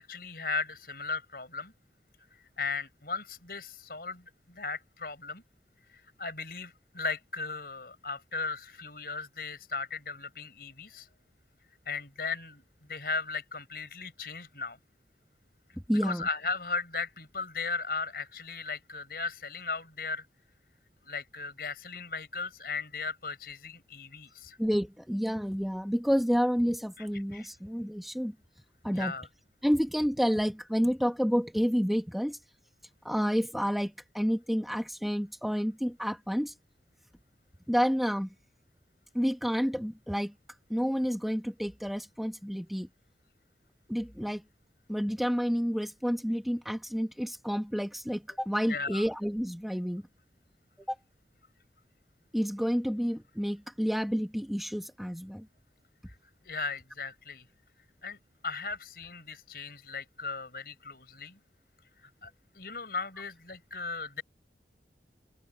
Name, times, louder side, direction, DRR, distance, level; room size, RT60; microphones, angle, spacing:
voice 1, 0.0-1.7 2.6-5.4 5.9-11.1 11.9-14.8 15.9-20.3 21.0-24.6 27.0-27.1 27.3-27.5 28.9-29.3 48.7-49.0 56.1-56.2 56.4-57.5 58.0-58.2 58.4-61.4 62.0-64.2, left 4 dB, 55° left, 5.8 m, -37 dB
voice 2, 15.9-16.3 24.6-28.3 28.8-29.1 29.6-32.4 33.0-36.5 37.7-38.3 39.1-40.3 40.7-42.9 43.9-44.4 44.9-50.0 50.9-51.0 52.3-55.5, equal, ahead, 1.4 m, -29 dB
open air
head